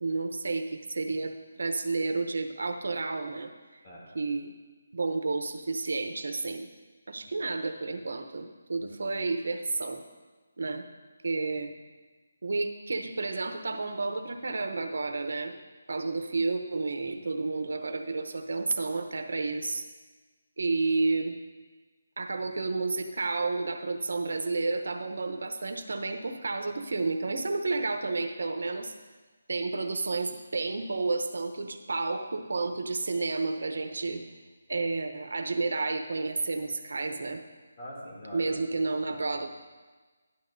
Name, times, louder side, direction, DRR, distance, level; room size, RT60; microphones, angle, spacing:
voice 1, 0.0-3.5 4.1-4.5 4.9-6.7 7.1-10.0 10.6-10.9 11.2-11.7 12.4-15.6 15.9-19.9 20.6-21.3 22.2-28.9 29.5-34.2 34.7-37.4 38.3-39.5, right 3 dB, 75° right, 6 dB, 0.8 m, -31 dB
voice 2, 8.8-9.1 11.5-11.6 17.0-17.2 34.0-34.2 37.8-38.5 39.0-39.5, equal, 30° left, -4 dB, 2.8 m, -46 dB
12.0 x 11.0 x 2.7 m, 1.3 s
hypercardioid pair, 175°, 0 cm